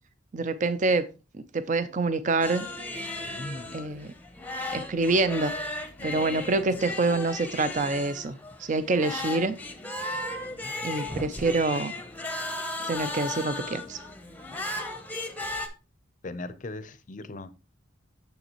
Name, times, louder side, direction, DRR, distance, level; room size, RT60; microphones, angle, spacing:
voice 1, 0.3-1.0 1.5-2.7 3.7-4.1 4.7-5.5 6.0-9.6 10.8-11.9 12.9-14.0, right 3 dB, 35° right, 0.4 m, -26 dB
sound 1, 2.4-15.7, left 2 dB, 10° left, 0.7 m, -36 dB
voice 2, 3.3-3.8 6.0-6.3 10.5-10.7 16.2-17.5, left 2 dB, 40° left, 0.5 m, -39 dB
6.9 x 6.6 x 2.9 m
head